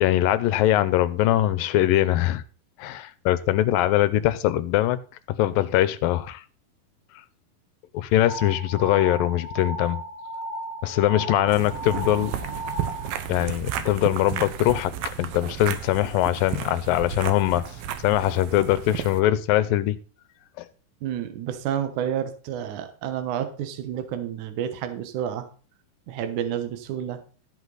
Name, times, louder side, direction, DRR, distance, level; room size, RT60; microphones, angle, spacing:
voice 1, 0.0-2.4 2.8-5.0 5.4-6.4 7.1-7.2 7.9-10.0 10.8-12.3 13.3-14.9 15.2-17.6 18.0-20.0 20.6-20.7, left 14 dB, 80° left, 2.4 m, -22 dB
sound 1, 8.3-13.1, right 1 dB, 55° left, 1.2 m, -35 dB
sound 2, 11.5-19.2, right 10 dB, 80° right, 2.7 m, -33 dB
voice 2, 21.0-25.5 26.1-27.2, right 9 dB, 65° right, 2.4 m, -30 dB
13.5 x 8.0 x 4.0 m
omnidirectional pair, 4.1 m